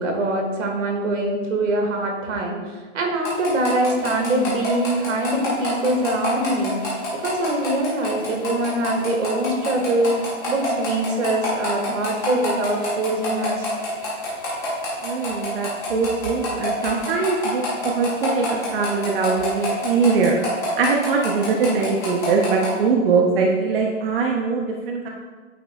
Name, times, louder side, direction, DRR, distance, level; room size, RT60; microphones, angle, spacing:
voice 1, 0.0-13.7, right 1 dB, 80° right, 2 dB, 1.6 m, -24 dB
sound 1, 3.2-22.7, left 3 dB, 5° left, 0.7 m, -28 dB
voice 2, 15.0-20.4 20.8-25.1, right 4 dB, 50° right, 0 dB, 0.6 m, -22 dB
8.6 x 3.1 x 3.5 m, 1.3 s
hypercardioid pair, 170°, 37 cm